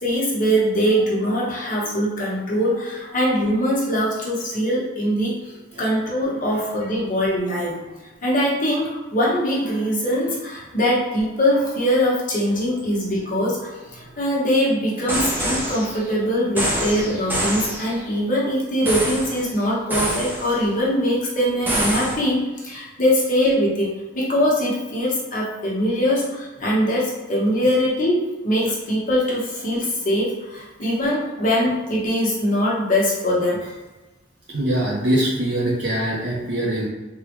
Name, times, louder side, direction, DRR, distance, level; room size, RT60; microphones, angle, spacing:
voice 1, 0.0-5.4 5.8-7.9 8.2-33.6, equal, 40° left, -5 dB, 0.8 m, -22 dB
sound 1, 15.1-16.1 16.6-18.0 18.9-19.5 19.9-20.7 21.7-22.1, right 1 dB, 10° right, 0.4 m, -25 dB
voice 2, 34.5-36.9, right 1 dB, 60° right, -5 dB, 0.5 m, -23 dB
3.4 x 2.1 x 2.9 m, 1.1 s
head